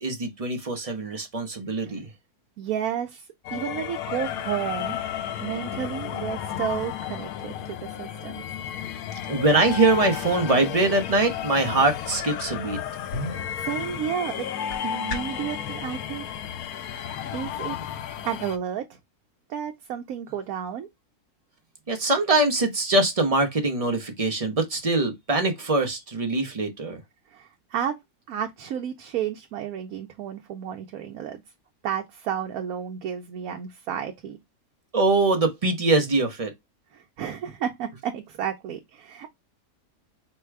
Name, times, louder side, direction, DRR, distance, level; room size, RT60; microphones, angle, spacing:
voice 1, 0.0-2.1 9.3-12.8 21.9-27.0 34.9-36.5, right 2 dB, 35° right, 0.6 m, -23 dB
voice 2, 2.6-5.0 5.4-8.4 13.2-14.5 14.8-16.2 17.3-17.8 18.2-19.0 19.5-20.9 27.3-28.0 28.3-31.4 31.8-34.4 36.9-39.3, right 9 dB, 75° right, 1.1 m, -32 dB
sound 1, 3.4-18.6, left 10 dB, 75° left, 1.0 m, -33 dB
sound 2, 13.0-15.5, left 1 dB, 55° left, 1.3 m, -37 dB
4.2 x 2.2 x 4.5 m
omnidirectional pair, 1.6 m